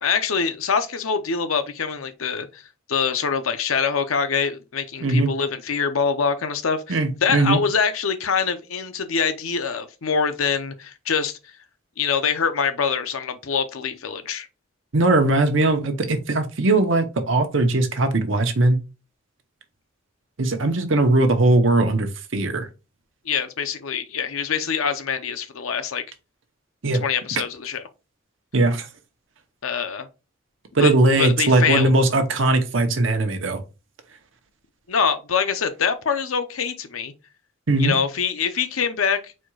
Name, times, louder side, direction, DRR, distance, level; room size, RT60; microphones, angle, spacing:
voice 1, 0.0-2.6 2.9-11.4 12.0-14.5 23.2-26.0 27.0-27.8 29.6-30.1 30.8-31.9 34.9-37.1 37.8-39.3, left 6 dB, 85° left, 0.6 m, -24 dB
voice 2, 5.0-5.4 6.9-7.6 14.9-18.8 20.4-22.7 26.8-27.0 28.5-28.9 30.7-33.6 37.7-38.0, right 2 dB, 70° right, 0.8 m, -19 dB
4.3 x 2.3 x 4.5 m
head